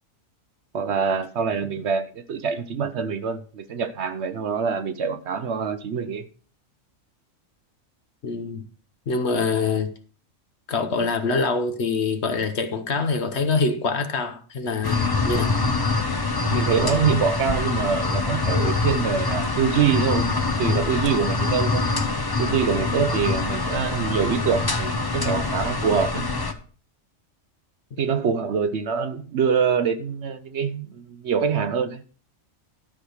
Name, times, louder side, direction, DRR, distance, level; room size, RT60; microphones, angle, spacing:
voice 1, 0.7-6.2 16.5-20.3 20.6-21.9 22.4-26.3 28.0-32.0, right 6 dB, 60° right, 0.9 m, -25 dB
voice 2, 8.2-8.6 9.1-9.9 10.7-15.5, left 4 dB, 55° left, 1.2 m, -25 dB
sound 1, 14.8-26.5, left 3 dB, 20° left, 0.7 m, -24 dB
12.5 x 4.8 x 6.4 m
omnidirectional pair, 1.4 m